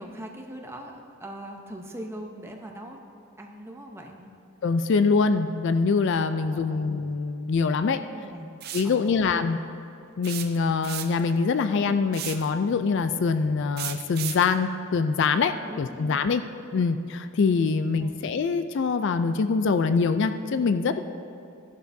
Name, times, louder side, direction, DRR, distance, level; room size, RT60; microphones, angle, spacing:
voice 1, 0.0-3.0 3.4-4.3 6.5-6.9 8.0-8.6 8.8-9.4 15.6-16.1 18.0-18.2, right 1 dB, 10° right, 1 dB, 0.8 m, -41 dB
voice 2, 4.6-8.0 8.7-9.6 10.2-16.4 16.7-21.0, left 4 dB, 55° left, 10 dB, 0.3 m, -24 dB
sound 1, 8.6-8.9 10.2-11.3 12.1-12.5 13.8-14.5, right 10 dB, 45° right, 0.6 m, -34 dB
13.5 x 11.5 x 2.7 m, 2.7 s
head